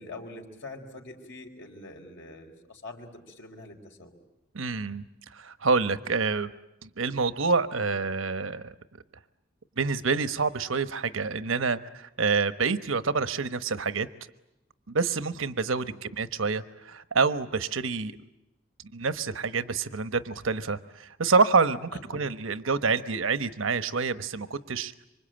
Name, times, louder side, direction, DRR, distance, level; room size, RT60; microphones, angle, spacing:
voice 1, 0.0-4.2 15.7-15.9 21.9-22.2, left 2 dB, 65° left, 2 dB, 4.2 m, -44 dB
voice 2, 4.5-6.5 6.8-8.7 9.8-14.1 14.9-18.2 18.9-24.9, right 4 dB, 80° right, 13 dB, 1.1 m, -27 dB
26.5 x 25.0 x 8.9 m, 0.94 s
head